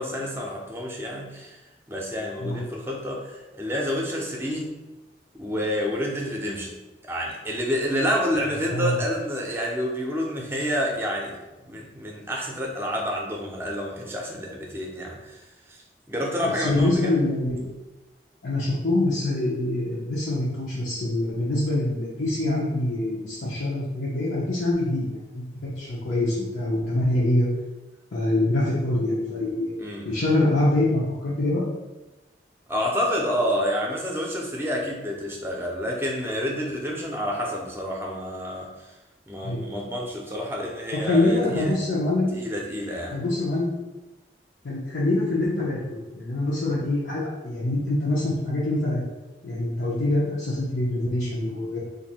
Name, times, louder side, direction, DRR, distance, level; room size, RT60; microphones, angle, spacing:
voice 1, 0.0-1.6 1.9-4.7 5.3-6.8 7.0-11.4 11.6-15.4 15.7-15.8 16.1-17.2 29.8-30.2 32.7-38.9 39.3-41.7 42.3-43.2, equal, 15° right, -1 dB, 0.5 m, -29 dB
voice 2, 16.5-17.7 18.4-27.5 28.1-29.7 30.0-31.6 39.4-39.6 40.9-42.3 43.1-43.7 44.6-49.0 49.4-51.8, left 2 dB, 90° left, -7 dB, 0.8 m, -25 dB
2.6 x 2.6 x 4.2 m, 1.1 s
head